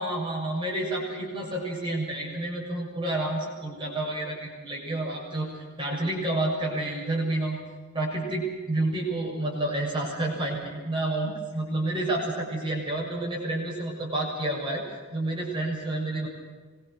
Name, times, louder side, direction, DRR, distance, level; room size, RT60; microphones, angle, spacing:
voice 1, 0.0-7.6 7.9-14.8 15.1-16.3, right 1 dB, 20° right, -2 dB, 6.7 m, -29 dB
25.0 x 22.5 x 6.4 m, 1.4 s
head